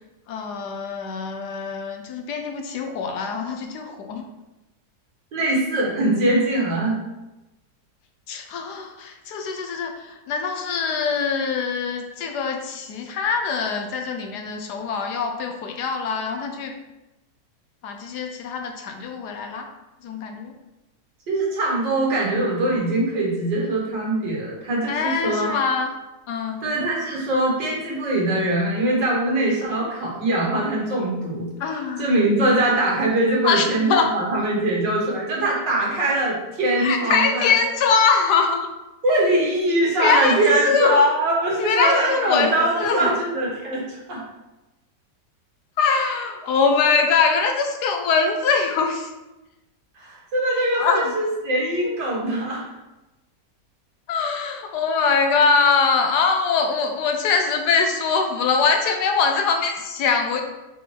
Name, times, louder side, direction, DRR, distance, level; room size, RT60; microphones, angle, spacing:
voice 1, 0.3-4.3 8.3-16.7 17.8-19.7 20.0-20.5 24.9-25.9 26.3-26.6 31.6-32.1 33.4-34.1 36.8-38.7 40.0-41.0 41.6-43.1 45.8-49.1 50.8-51.1 54.1-60.4, left 5 dB, 70° left, 4 dB, 1.3 m, -23 dB
voice 2, 5.3-7.0 21.3-25.5 26.6-37.6 39.0-44.2 50.0-52.7, right 1 dB, 85° right, -4 dB, 2.5 m, -22 dB
5.5 x 4.5 x 4.6 m, 1.0 s
omnidirectional pair, 1.9 m